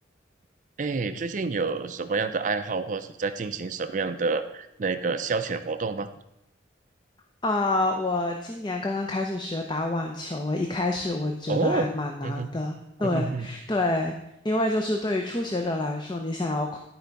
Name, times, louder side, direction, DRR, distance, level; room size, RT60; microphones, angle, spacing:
voice 1, 0.8-6.1 11.5-11.9 12.2-12.5 13.0-13.5, right 4 dB, 40° right, 10 dB, 0.4 m, -28 dB
voice 2, 7.4-14.1 14.4-16.8, left 2 dB, 25° left, 3 dB, 0.6 m, -27 dB
11.5 x 4.6 x 5.3 m, 0.82 s
head